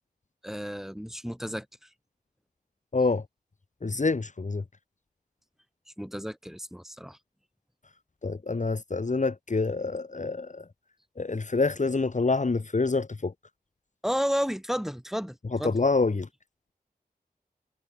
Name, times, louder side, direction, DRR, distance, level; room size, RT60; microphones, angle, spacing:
voice 1, 0.4-1.7 6.0-7.2 14.0-15.8, equal, ahead, 6.7 m, -32 dB
voice 2, 2.9-3.2 3.8-4.6 8.2-10.6 11.2-13.3 15.6-16.3, left 3 dB, 50° left, 2.1 m, -26 dB
wide cardioid pair, 65°, 16 cm